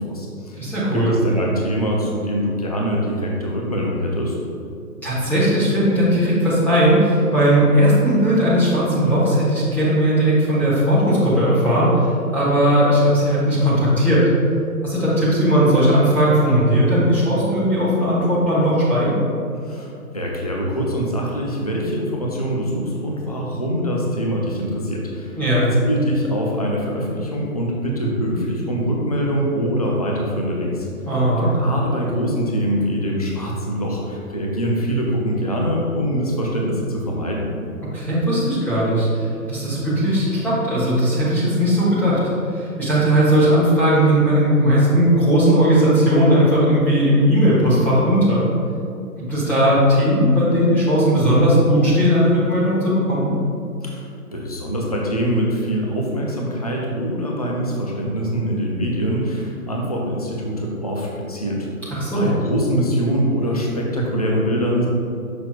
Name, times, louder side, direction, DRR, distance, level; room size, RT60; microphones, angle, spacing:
voice 1, 0.0-0.6 0.9-4.4 19.6-30.9 31.5-37.5 53.8-61.7 62.1-64.9, equal, 30° left, -2 dB, 0.3 m, -24 dB
voice 2, 0.6-1.1 5.0-14.2 14.8-19.2 25.4-25.6 31.1-31.5 37.9-42.2 42.5-48.4 49.3-53.3 61.9-62.3, equal, 5° left, -11 dB, 1.1 m, -17 dB
6.9 x 5.9 x 2.4 m, 2.5 s
hypercardioid pair, 145°, 45 cm